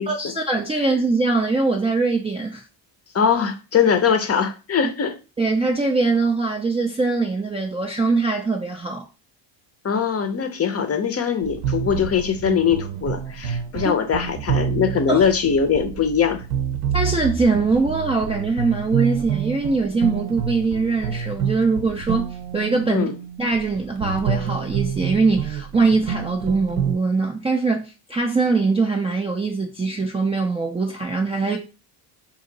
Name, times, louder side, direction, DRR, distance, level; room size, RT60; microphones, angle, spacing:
voice 1, 0.1-2.6 5.4-9.1 13.8-13.9 15.1-15.2 16.9-22.3 22.5-23.1 23.4-31.6, right 3 dB, 15° right, 0.4 m, -22 dB
voice 2, 3.1-5.1 9.8-16.4 22.9-23.1, left 7 dB, 30° left, 0.6 m, -21 dB
sound 1, 11.4-27.0, right 8 dB, 75° right, 0.8 m, -28 dB
2.8 x 2.7 x 3.9 m
supercardioid pair, 90°, 50 cm